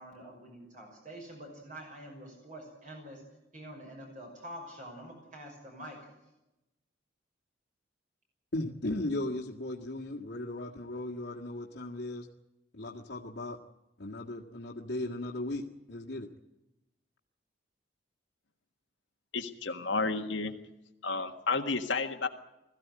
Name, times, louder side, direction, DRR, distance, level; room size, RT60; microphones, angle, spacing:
voice 1, 0.0-3.2 3.5-6.1, equal, 40° right, 0 dB, 5.8 m, -46 dB
voice 2, 8.5-12.3 12.7-13.6 14.0-16.3, left 1 dB, 65° left, -3 dB, 1.9 m, -37 dB
voice 3, 19.3-20.5 21.0-22.3, left 4 dB, 80° left, 4 dB, 1.7 m, -31 dB
21.0 x 15.0 x 9.6 m, 0.96 s
head